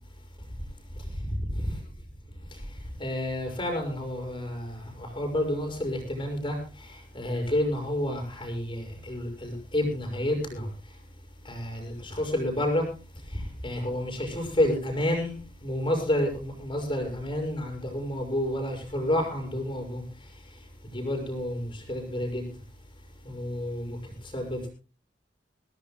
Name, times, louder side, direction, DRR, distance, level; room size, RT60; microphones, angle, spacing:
voice 1, 3.0-6.6 7.1-10.7 11.4-12.8 13.3-20.0 20.9-22.5 23.2-24.0 24.3-24.7, left 1 dB, 30° left, 6.3 m, -29 dB
24.5 x 17.0 x 2.2 m
head